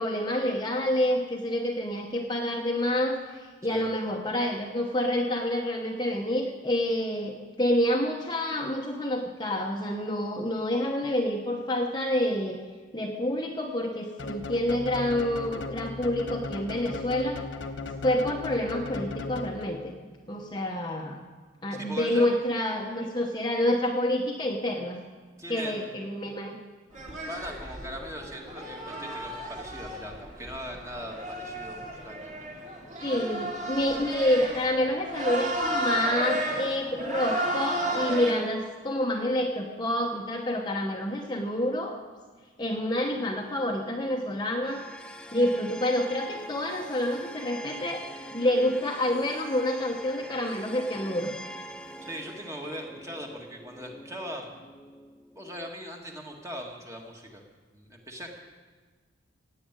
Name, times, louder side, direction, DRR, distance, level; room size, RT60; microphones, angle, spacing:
voice 1, 0.0-12.6 12.9-17.4 18.0-19.9 20.3-21.2 21.6-25.0 25.5-26.6 33.0-42.0 42.6-44.8 45.3-48.0 48.3-51.3, left 1 dB, 20° left, 1 dB, 1.0 m, -28 dB
sound 1, 14.2-19.9, left 3 dB, 70° left, 1.0 m, -37 dB
voice 2, 21.7-22.4 25.4-25.9 27.3-32.4 52.0-54.5 55.4-57.4 57.7-58.4, equal, 15° right, 1 dB, 1.8 m, -40 dB
sound 2, 26.9-38.3, right 1 dB, 35° right, 3.3 m, -33 dB
sound 3, 44.6-55.7, equal, 5° left, 0.5 m, -44 dB
16.5 x 8.6 x 9.0 m, 1.4 s
head